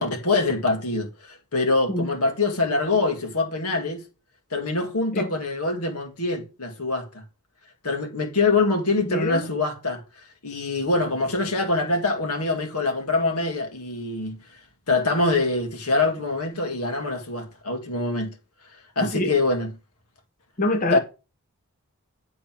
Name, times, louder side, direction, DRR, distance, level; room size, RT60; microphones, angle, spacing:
voice 1, 0.0-4.0 4.5-7.2 7.8-10.0 10.4-14.4 14.9-18.3 19.0-19.7 20.9-21.0, left 3 dB, 85° left, 2.1 m, -24 dB
voice 2, 9.0-9.5 19.0-19.3 20.6-21.0, left 1 dB, 35° left, 0.8 m, -25 dB
9.2 x 3.9 x 6.0 m
head